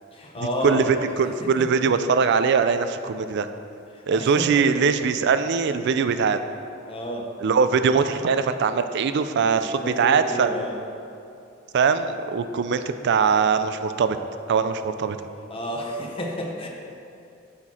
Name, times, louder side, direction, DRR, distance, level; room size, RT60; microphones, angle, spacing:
voice 1, 0.1-1.3 1.6-1.7 3.9-4.6 6.9-7.3 9.4-10.8 15.5-16.7, left 1 dB, 25° left, 0 dB, 0.7 m, -31 dB
voice 2, 0.6-3.5 4.1-6.4 7.4-10.5 11.7-14.2 14.5-15.2, right 5 dB, 55° right, 10 dB, 0.3 m, -21 dB
8.9 x 4.4 x 4.2 m, 2.6 s
head